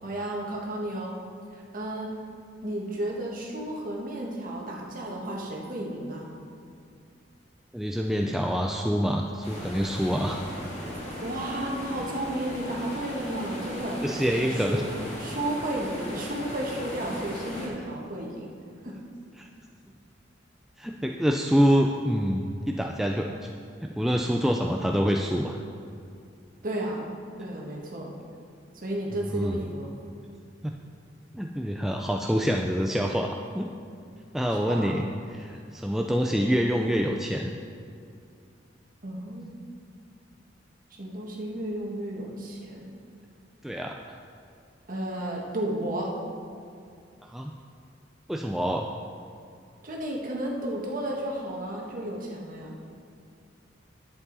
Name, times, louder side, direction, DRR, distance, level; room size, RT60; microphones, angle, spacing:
voice 1, 0.0-1.2 1.5-2.1 2.6-6.3 10.9-14.0 14.4-14.9 15.2-18.5 18.8-19.0 26.6-27.1 27.4-28.1 28.7-29.9 34.7-34.9 39.0-39.5 41.0-42.9 44.9-46.1 49.8-52.7, right 1 dB, 50° right, -2 dB, 1.6 m, -33 dB
voice 2, 7.7-10.4 14.0-14.8 20.8-23.5 23.8-25.6 29.3-29.6 30.6-30.7 31.3-33.7 34.3-37.5 43.6-44.2 47.2-47.5 48.3-48.9, equal, ahead, 1 dB, 0.3 m, -26 dB
sound 1, 9.4-17.7, left 1 dB, 35° left, 2.0 m, -37 dB
11.0 x 8.0 x 4.0 m, 2.4 s
head